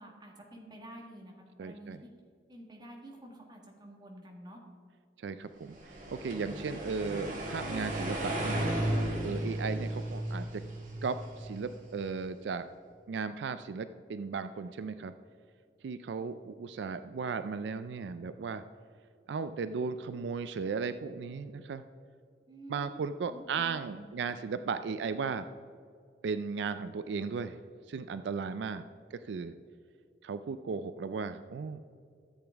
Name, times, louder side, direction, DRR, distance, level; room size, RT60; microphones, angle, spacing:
voice 1, 0.0-1.3 1.6-2.1 2.5-4.6 22.5-24.2 24.7-24.9, equal, 25° right, 0 dB, 1.6 m, -49 dB
voice 2, 1.6-2.0 5.2-8.6 9.2-10.6 11.0-12.7 13.1-15.1 15.8-18.6 19.3-21.8 22.7-25.4 26.2-27.6 27.9-28.8 29.1-29.5 30.2-31.8, right 5 dB, 80° right, 12 dB, 0.4 m, -36 dB
sound 1, 5.7-11.9, right 1 dB, 45° right, 1.7 m, -34 dB
13.5 x 8.0 x 3.5 m, 2.3 s
head